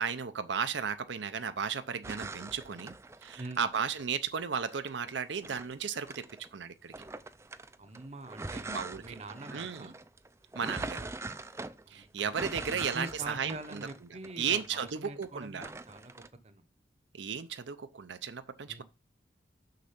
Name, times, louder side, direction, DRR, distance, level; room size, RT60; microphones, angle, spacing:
voice 1, 0.0-2.9 3.2-6.9 8.7-9.0 9.5-9.9 10.5-11.1 11.9-13.9 14.4-15.7 17.1-18.8, right 7 dB, 80° right, 0.6 m, -34 dB
sound 1, 2.0-4.1 4.6-6.5 6.9-15.3 15.6-16.3, right 2 dB, 15° right, 0.3 m, -43 dB
voice 2, 7.8-9.9 11.9-12.3 12.7-16.7 18.7-18.8, right 2 dB, 35° right, 0.8 m, -45 dB
6.6 x 6.4 x 5.9 m
head